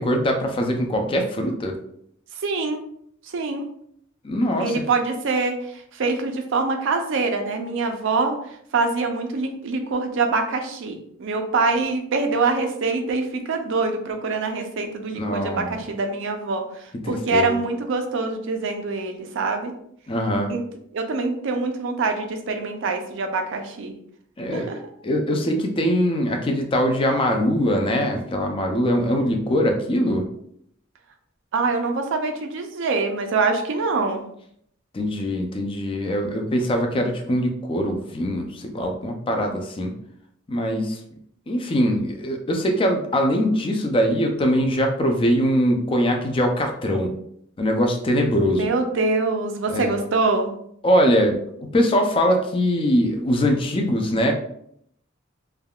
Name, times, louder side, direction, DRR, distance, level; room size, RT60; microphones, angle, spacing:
voice 1, 0.0-1.8 4.2-4.7 15.1-15.8 17.0-17.5 20.1-20.5 24.4-30.3 34.9-39.9 40.5-41.0 41.5-47.1 47.6-48.7 49.7-50.0 50.8-51.4 51.7-54.3, equal, 25° left, 3 dB, 0.4 m, -22 dB
voice 2, 2.4-2.8 3.3-3.7 4.6-8.4 8.7-16.6 17.1-19.7 20.5-20.6 20.9-24.0 24.5-24.8 31.5-34.2 48.6-50.5, right 3 dB, 65° right, 5 dB, 0.4 m, -24 dB
3.4 x 2.3 x 2.3 m, 0.70 s
head